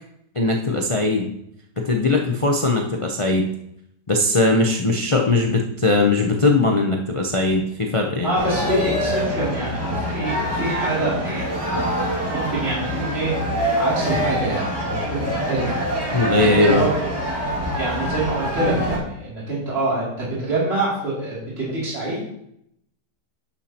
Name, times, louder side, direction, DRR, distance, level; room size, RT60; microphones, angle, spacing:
voice 1, 0.3-1.3 1.8-3.5 4.1-8.4 16.1-16.8, left 2 dB, 55° left, 1 dB, 0.3 m, -20 dB
voice 2, 8.2-11.5 12.3-13.3 13.8-16.9 17.7-22.2, right 2 dB, 35° right, -7 dB, 3.2 m, -25 dB
sound 1, 8.3-19.0, equal, 15° right, 2.2 m, -25 dB
10.5 x 7.2 x 2.9 m, 0.75 s
omnidirectional pair, 1.8 m